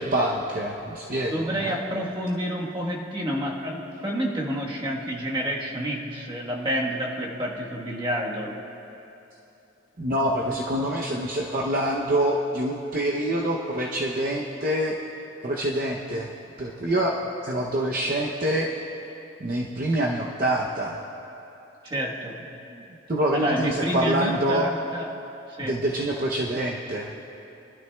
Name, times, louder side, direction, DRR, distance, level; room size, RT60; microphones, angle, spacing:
voice 1, 0.0-1.8 10.0-15.0 15.4-16.3 16.6-18.7 19.4-21.0 22.7-22.8 23.1-24.6 25.6-27.1, right 1 dB, 45° right, -2 dB, 0.7 m, -26 dB
voice 2, 1.2-8.6 21.8-22.5 23.3-25.1 25.5-25.8, equal, 20° right, -3 dB, 1.2 m, -29 dB
23.5 x 12.0 x 2.3 m, 2.9 s
head